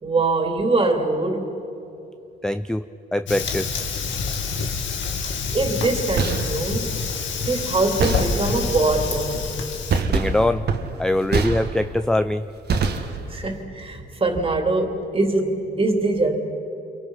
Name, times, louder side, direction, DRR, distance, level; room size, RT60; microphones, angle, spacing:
voice 1, 0.0-1.5 5.5-7.0 7.4-9.5 13.3-16.4, right 2 dB, 30° right, 3 dB, 3.1 m, -23 dB
voice 2, 2.4-2.9 3.1-3.7 10.1-10.7 11.0-12.5, left 1 dB, 5° left, 10 dB, 0.5 m, -22 dB
Fire, 3.3-10.0, left 5 dB, 70° left, 2.0 m, -27 dB
sound 1, 6.0-6.7 8.0-8.7 9.9-12.1 12.7-13.5, right 4 dB, 55° right, 1.7 m, -25 dB
29.0 x 24.0 x 5.7 m, 2.9 s
cardioid pair, 90°, 20 cm